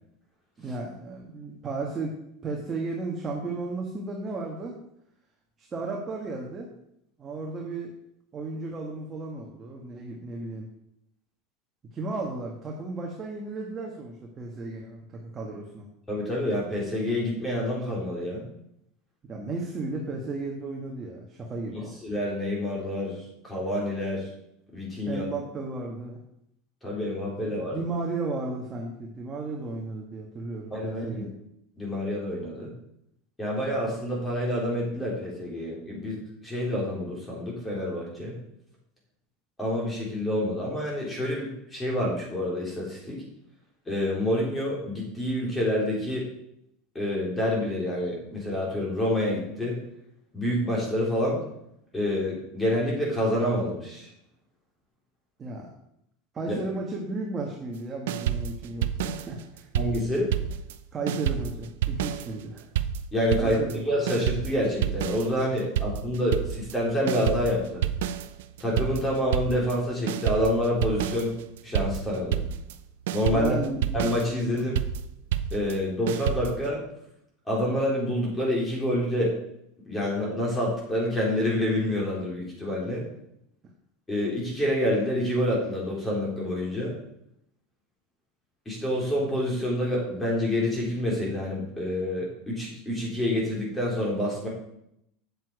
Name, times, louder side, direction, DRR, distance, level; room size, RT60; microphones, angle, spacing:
voice 1, 0.6-2.2 2.4-4.8 5.6-6.7 7.2-7.9 8.3-10.7 11.9-15.9 19.2-21.9 25.0-26.2 27.4-31.3 55.4-55.7 56.3-59.7 60.9-62.7 63.4-63.8 73.3-73.8 74.5-74.7, right 3 dB, 25° right, -1 dB, 1.5 m, -34 dB
voice 2, 16.1-18.4 21.7-23.2 23.4-24.3 24.7-25.3 26.8-27.8 30.7-31.2 31.8-32.7 33.4-38.3 39.6-43.2 43.9-46.3 46.9-49.8 50.3-51.5 51.9-54.1 56.5-56.6 59.7-60.3 63.1-63.6 63.9-67.8 68.6-71.3 71.6-72.4 73.1-73.6 73.9-74.7 75.5-76.8 77.5-79.3 79.9-83.0 84.1-86.9 88.7-94.5, left 1 dB, 15° left, -4 dB, 4.0 m, -27 dB
sound 1, 58.1-60.8 61.1-76.7, right 10 dB, 85° right, 0.6 m, -30 dB
8.3 x 7.3 x 4.8 m, 0.78 s
supercardioid pair, 135°, 0 cm